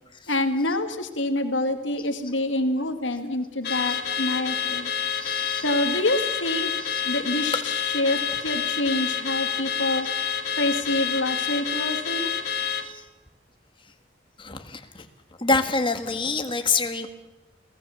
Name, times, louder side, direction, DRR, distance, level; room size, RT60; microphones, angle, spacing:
voice 1, 0.3-4.9 5.6-6.7 7.1-10.1 10.6-12.3, left 1 dB, 75° left, 7 dB, 2.1 m, -26 dB
Car / Alarm, 3.6-12.9, left 7 dB, 55° left, 2.1 m, -28 dB
voice 2, 5.1-5.6 6.8-7.0 12.8-13.0 14.4-15.1 15.4-17.1, left 3 dB, 25° left, 7 dB, 1.8 m, -27 dB
29.5 x 18.0 x 7.2 m, 1.1 s
head